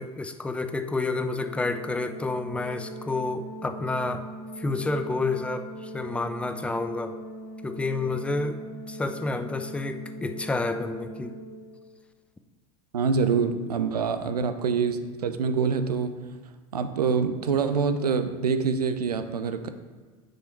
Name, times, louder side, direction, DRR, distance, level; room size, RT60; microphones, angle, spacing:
voice 1, 0.0-4.2 4.6-7.2 7.6-8.6 8.9-11.4, left 3 dB, 5° left, 8 dB, 0.4 m, -29 dB
Organ, 1.1-11.9, right 1 dB, 85° left, 1.6 m, -41 dB
voice 2, 12.9-16.2 16.7-19.7, right 5 dB, 80° right, 10 dB, 0.5 m, -25 dB
6.2 x 4.8 x 4.5 m, 1.4 s
figure-of-eight pair, 80°, 19 cm